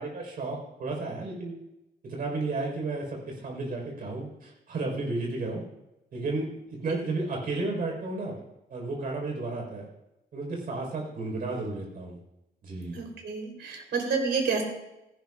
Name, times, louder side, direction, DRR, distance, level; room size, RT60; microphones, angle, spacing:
voice 1, 0.0-1.6 2.0-5.6 6.1-8.4 8.7-9.9 10.3-12.2 12.6-13.0, right 3 dB, 55° right, 0 dB, 4.3 m, -33 dB
voice 2, 12.9-14.6, right 5 dB, 85° right, 1 dB, 3.6 m, -29 dB
17.0 x 16.0 x 2.4 m, 0.92 s
wide cardioid pair, 175°, 18 cm